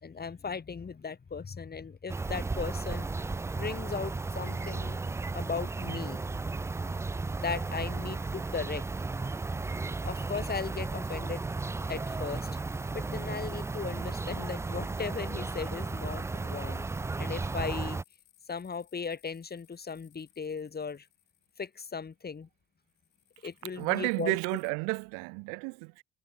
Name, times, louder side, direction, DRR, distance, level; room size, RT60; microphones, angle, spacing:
voice 1, 0.0-3.1 3.5-5.0 5.3-6.2 7.4-8.8 10.0-11.4 11.9-12.5 12.9-16.9 17.2-18.0 18.5-21.1 21.6-22.5 23.4-24.4, left 5 dB, 25° left, 1.9 m, -37 dB
sound 1, 2.1-18.0, right 3 dB, 10° right, 0.4 m, -34 dB
sound 2, 7.5-22.5 22.8-24.7, left 15 dB, 75° left, 5.4 m, -65 dB
voice 2, 23.7-26.0, right 33 dB, 60° right, 0.8 m, -31 dB
figure-of-eight pair, 45°, 35 cm